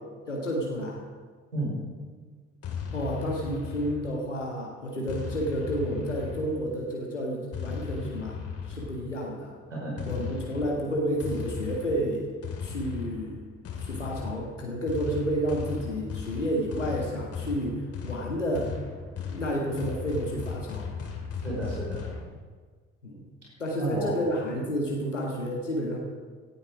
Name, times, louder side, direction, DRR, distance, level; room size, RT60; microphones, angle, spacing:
voice 1, 0.3-1.0 2.9-8.4 8.7-9.5 10.1-12.2 12.6-13.4 13.8-18.7 19.3-20.9 23.0-23.2 23.6-26.0, equal, 85° left, -1 dB, 1.7 m, -30 dB
voice 2, 1.5-1.9 9.7-10.2 21.4-22.1 23.8-24.2 24.5-24.6, right 1 dB, 85° right, -5 dB, 5.2 m, -32 dB
sound 1, 2.6-4.4 5.1-6.8 7.5-9.2 10.0-22.2, left 6 dB, 40° left, 2.7 m, -37 dB
17.0 x 12.0 x 4.9 m, 1.5 s
figure-of-eight pair, 55°, 36 cm